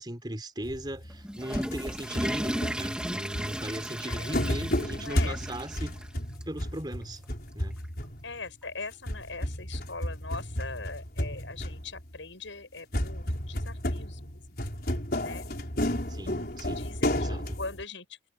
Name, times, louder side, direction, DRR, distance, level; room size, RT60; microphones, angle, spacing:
voice 1, 0.0-5.9 6.5-7.2 7.5-7.8 16.1-16.9 17.1-17.6, right 1 dB, 25° right, 4.1 m, -38 dB
sound 1, 0.6-1.3 1.5-8.5 8.9-12.2 12.9-17.8, left 1 dB, 50° left, 5.4 m, -33 dB
Water / Toilet flush, 1.1-6.1 6.4-6.5 7.2-7.3 8.6-8.7, equal, 5° right, 2.4 m, -35 dB
voice 2, 4.1-4.6 4.9-5.4 5.7-5.8 8.2-14.4 15.2-15.5 16.8-18.1, left 3 dB, 85° left, 7.6 m, -41 dB
head